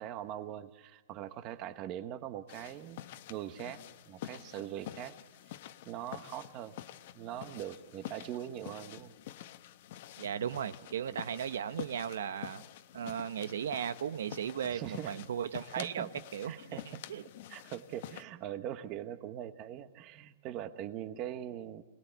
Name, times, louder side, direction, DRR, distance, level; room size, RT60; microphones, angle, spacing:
voice 1, 0.0-3.0 3.3-5.2 5.5-5.6 5.9-6.7 7.1-9.1 11.1-11.2 14.7-15.2 15.8-16.1 16.4-17.0 17.5-21.8, right 11 dB, 30° right, 11 dB, 1.1 m, -42 dB
sound 1, 2.5-18.2, left 13 dB, 50° left, 1.0 m, -48 dB
voice 2, 10.2-12.6 12.9-16.8 17.1-17.2, right 8 dB, 85° right, 12 dB, 1.0 m, -36 dB
26.0 x 20.0 x 8.2 m, 1.1 s
supercardioid pair, 165°, 0 cm